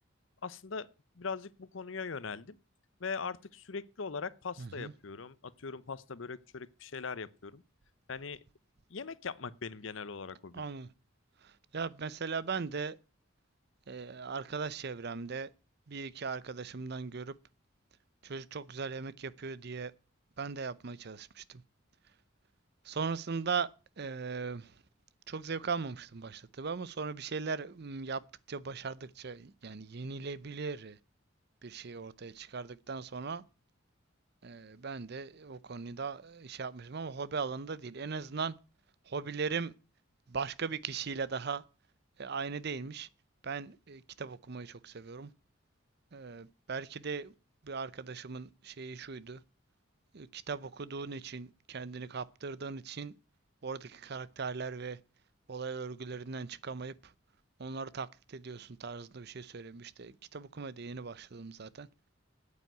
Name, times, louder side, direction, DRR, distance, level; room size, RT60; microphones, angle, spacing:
voice 1, 0.4-0.9 1.2-2.6 3.0-7.6 8.1-8.4 8.9-10.6, left 5 dB, 70° left, 0.8 m, -40 dB
voice 2, 4.6-4.9 10.5-10.9 11.4-13.0 13.9-15.5 15.9-17.3 18.2-19.9 20.4-21.6 22.8-23.7 24.0-24.7 25.3-28.2 28.5-31.0 31.6-33.4 34.4-38.5 39.1-39.7 40.3-41.6 42.2-43.1 43.4-45.3 46.1-47.3 47.6-49.4 50.1-53.1 53.6-55.0 55.5-57.1 57.6-61.9, right 5 dB, 55° right, 0.7 m, -39 dB
9.3 x 8.5 x 9.1 m
head